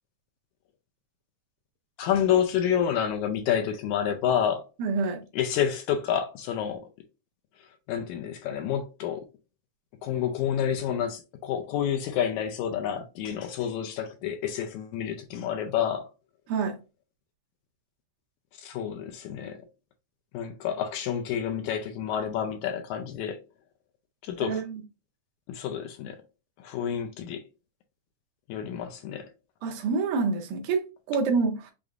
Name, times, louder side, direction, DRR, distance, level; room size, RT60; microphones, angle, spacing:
voice 1, 2.0-4.7 5.3-6.9 7.9-9.2 10.0-16.1 18.6-19.6 20.3-23.4 24.2-24.6 25.5-26.2 26.6-27.5 28.5-29.3, left 9 dB, 80° left, 1.8 m, -29 dB
voice 2, 4.8-5.2 16.5-16.8 24.4-24.8 29.6-31.7, right 4 dB, 80° right, 2.2 m, -27 dB
6.5 x 2.5 x 2.4 m
omnidirectional pair, 3.7 m